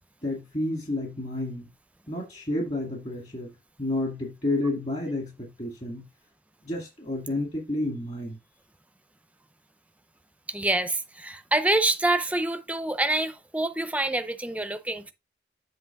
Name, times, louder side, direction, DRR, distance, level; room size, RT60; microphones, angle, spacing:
voice 1, 0.2-1.7 2.1-3.5 3.8-6.1 6.6-8.4, left 2 dB, 40° left, 1.9 m, -30 dB
voice 2, 10.5-15.1, right 2 dB, 10° right, 0.5 m, -26 dB
7.9 x 2.9 x 5.8 m
head